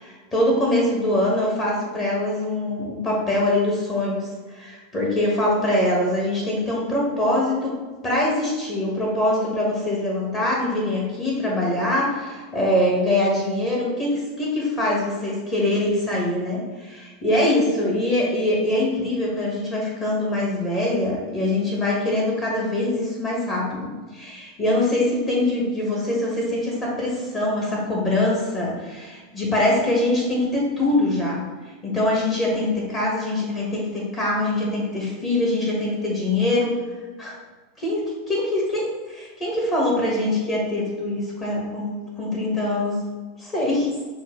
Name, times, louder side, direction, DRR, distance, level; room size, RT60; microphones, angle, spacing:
voice 1, 0.0-7.7 8.0-31.4 31.8-36.8 37.2-37.3 37.8-43.0 43.4-43.9, left 1 dB, 25° left, -4 dB, 1.3 m, -23 dB
6.0 x 2.3 x 3.7 m, 1.3 s
figure-of-eight pair, 85°, 0 cm